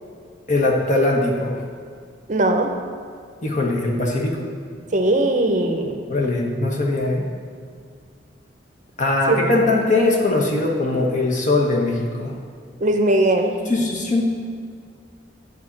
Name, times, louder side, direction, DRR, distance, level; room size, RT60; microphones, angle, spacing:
voice 1, 0.5-1.6 3.4-4.4 6.1-7.3 9.0-12.3 13.7-14.3, left 2 dB, 45° left, -1 dB, 1.3 m, -20 dB
voice 2, 2.3-2.7 4.9-6.0 9.3-9.4 12.8-13.6, right 1 dB, 45° right, 5 dB, 0.7 m, -19 dB
9.6 x 4.1 x 7.4 m, 2.1 s
head